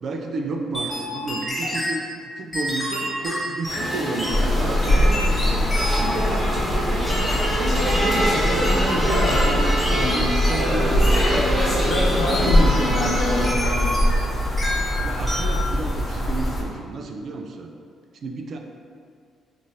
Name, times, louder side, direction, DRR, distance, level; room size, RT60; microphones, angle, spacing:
voice 1, 0.0-5.6 6.0-7.1 7.4-11.5 11.9-12.1 12.4-12.9 15.0-17.7 18.2-18.6, right 3 dB, 60° right, 3 dB, 0.3 m, -31 dB
sound 1, 0.7-2.0 2.5-4.4 4.8-6.2 7.1-8.2 8.6-10.7 11.0-11.3 11.9-12.5 13.0-14.3 14.6-15.0 15.3-15.6, equal, 15° left, 0.9 m, -29 dB
sound 2, 3.7-13.5, equal, 20° right, 1.1 m, -26 dB
sound 3, 4.3-16.6, left 1 dB, 35° left, 0.5 m, -22 dB
voice 2, 8.9-9.4 9.9-10.3 11.9-14.0, left 2 dB, 90° left, -1 dB, 0.4 m, -26 dB
3.1 x 2.5 x 2.7 m, 2.2 s
cardioid pair, 90°, 0 cm